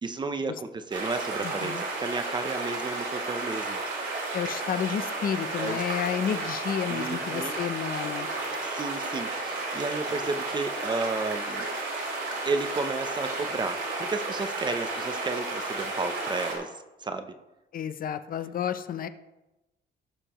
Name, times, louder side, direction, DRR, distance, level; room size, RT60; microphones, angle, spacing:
voice 1, 0.0-3.8 5.6-5.8 6.9-7.5 8.6-11.7 12.4-16.7 17.0-17.3, right 3 dB, 25° right, 9 dB, 0.6 m, -32 dB
sound 1, 0.9-16.5, right 2 dB, 85° right, 3.7 m, -32 dB
voice 2, 4.3-8.3 17.7-19.1, left 9 dB, 50° left, 11 dB, 0.6 m, -31 dB
17.5 x 6.7 x 3.0 m, 1.0 s
wide cardioid pair, 175°, 19 cm